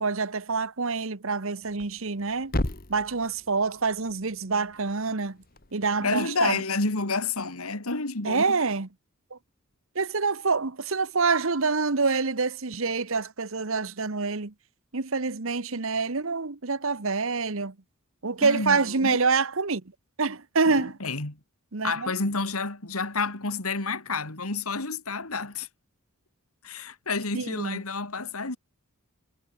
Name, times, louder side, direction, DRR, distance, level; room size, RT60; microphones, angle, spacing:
voice 1, 0.0-2.5 2.9-5.4 5.7-6.6 8.2-8.9 9.3-9.4 9.9-14.5 14.9-17.7 18.2-19.8 20.2-20.9 21.7-22.1 27.3-27.8, right 4 dB, 65° right, 1.2 m, -26 dB
Thump thud, 1.6-5.7, left 1 dB, 40° left, 2.2 m, -36 dB
voice 2, 6.0-8.6 18.4-19.2 20.7-21.4 21.8-25.7 26.6-28.6, left 3 dB, 80° left, 2.9 m, -30 dB
head